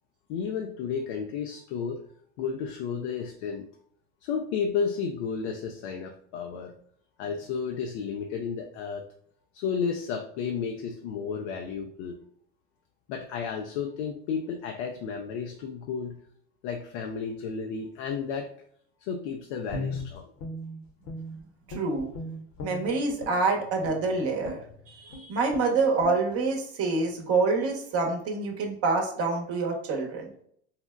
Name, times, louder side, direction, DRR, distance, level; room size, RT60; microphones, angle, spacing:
voice 1, 0.3-2.0 2.4-3.7 4.2-6.7 7.2-9.1 9.5-12.2 13.1-16.2 16.6-18.5 19.0-20.3, left 6 dB, 70° left, 4 dB, 0.5 m, -32 dB
Guitar, 19.7-21.4 21.7-23.4 23.8-24.0 24.4-24.7 25.1-25.2 25.5-25.7 26.0-26.2, left 1 dB, 55° left, 0.9 m, -37 dB
voice 2, 21.7-22.1 22.6-24.6 25.0-30.3, right 3 dB, 40° right, 2 dB, 0.9 m, -26 dB
4.0 x 2.0 x 2.3 m, 0.66 s
hypercardioid pair, 80°, 35 cm